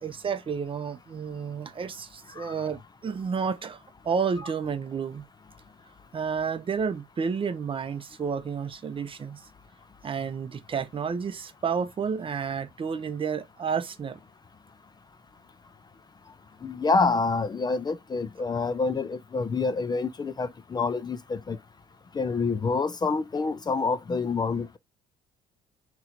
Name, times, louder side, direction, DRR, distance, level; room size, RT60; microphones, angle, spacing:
voice 1, 0.0-5.3 6.1-9.4 10.0-14.2, right 6 dB, 30° right, 0.6 m, -31 dB
voice 2, 16.6-21.6 22.1-24.8, left 4 dB, 25° left, 0.5 m, -27 dB
3.8 x 3.1 x 4.3 m
cardioid pair, 110°, 17 cm